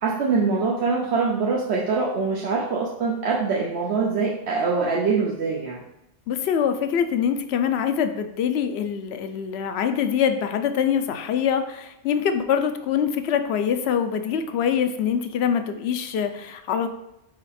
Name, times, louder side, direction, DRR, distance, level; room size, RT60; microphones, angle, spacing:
voice 1, 0.0-5.8, right 4 dB, 80° right, -2 dB, 1.1 m, -24 dB
voice 2, 6.3-16.9, left 8 dB, 75° left, 8 dB, 0.9 m, -24 dB
4.9 x 4.9 x 4.1 m, 0.84 s
omnidirectional pair, 1.1 m